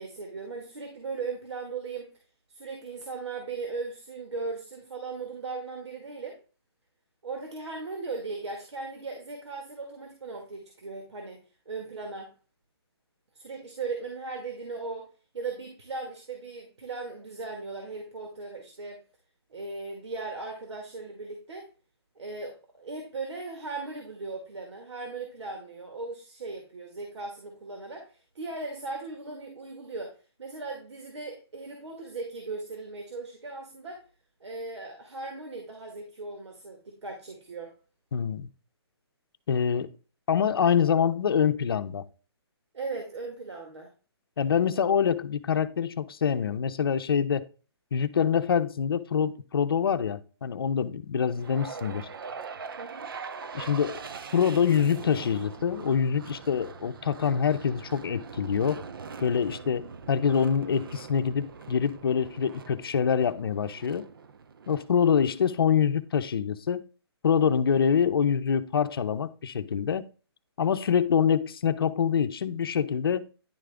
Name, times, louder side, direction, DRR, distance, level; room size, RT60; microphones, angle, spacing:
voice 1, 0.0-2.1 2.5-6.4 7.2-11.4 11.7-12.3 13.4-15.1 15.3-19.0 19.5-21.7 22.2-34.0 34.4-37.7 42.7-43.9 52.8-53.1, right 3 dB, 90° right, 1.8 m, -38 dB
voice 2, 38.1-38.5 39.5-39.9 40.3-42.1 44.4-47.5 47.9-52.1 53.5-54.0 54.3-58.8 59.2-64.1 64.7-66.8 67.2-70.1 70.6-73.3, left 7 dB, 60° left, 0.7 m, -25 dB
sound 1, 51.4-65.6, right 5 dB, 55° right, 0.6 m, -42 dB
10.5 x 3.7 x 3.5 m
hypercardioid pair, 175°, 14 cm